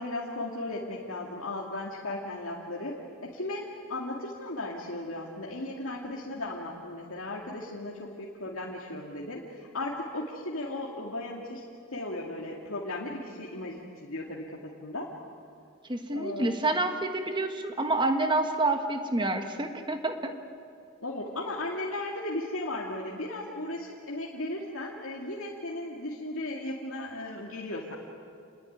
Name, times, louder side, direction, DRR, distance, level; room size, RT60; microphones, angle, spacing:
voice 1, 0.0-11.6 11.9-15.1 16.1-16.5 21.0-27.9, left 2 dB, 70° left, -3 dB, 2.5 m, -36 dB
voice 2, 15.9-20.3, right 2 dB, 20° right, 6 dB, 1.5 m, -28 dB
28.0 x 21.0 x 9.6 m, 2.4 s
head